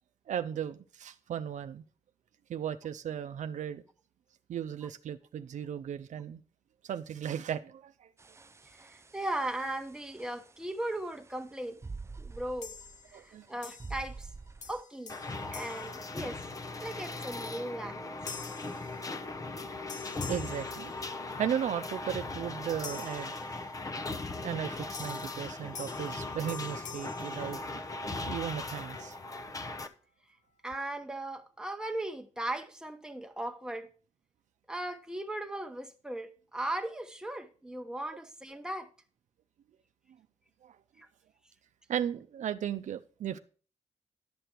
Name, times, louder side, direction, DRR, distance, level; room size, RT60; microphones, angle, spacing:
voice 1, 0.3-1.8 2.5-3.8 4.5-6.4 6.8-8.1 13.1-13.5 20.3-20.9 21.4-23.3 24.4-27.8 28.3-29.2 40.6-40.8 41.9-43.4, right 9 dB, 85° right, 0.5 m, -36 dB
sound 1, 8.2-14.8, right 4 dB, 25° right, 0.4 m, -47 dB
voice 2, 8.7-11.8 12.2-12.7 13.1-14.3 14.7-15.2 15.5-16.4 16.8-18.1 30.6-33.9 34.7-38.9 41.0-41.1, right 1 dB, 5° right, 1.1 m, -37 dB
sound 2, 12.6-13.3 13.6-14.3 14.6-16.8 17.3-17.6 18.3-19.6 19.9-21.5 22.8-24.0 24.9-28.2, left 6 dB, 85° left, 1.1 m, -48 dB
sound 3, 15.1-29.9, left 3 dB, 30° left, 0.8 m, -39 dB
11.0 x 6.8 x 4.5 m
wide cardioid pair, 110°, 12 cm